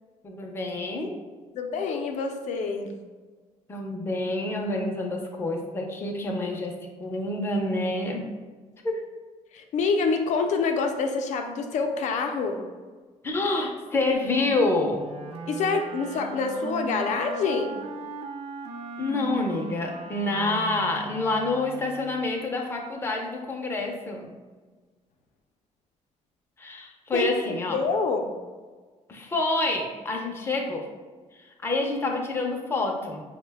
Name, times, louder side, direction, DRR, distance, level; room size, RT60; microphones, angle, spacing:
voice 1, 0.2-1.1 3.7-6.7 7.0-8.3 8.8-9.0 13.2-15.1 19.0-24.3 26.6-27.8 29.1-30.9 31.4-33.2, left 2 dB, 20° left, 1 dB, 0.5 m, -27 dB
voice 2, 1.6-2.9 9.5-12.6 15.5-17.8 27.1-27.3 27.7-28.3, left 4 dB, 75° left, 4 dB, 0.5 m, -26 dB
Wind instrument woodwind instrument, 14.9-22.3, right 4 dB, 55° right, 0.4 m, -38 dB
5.3 x 2.1 x 3.3 m, 1.4 s
cardioid pair, 150°, 12 cm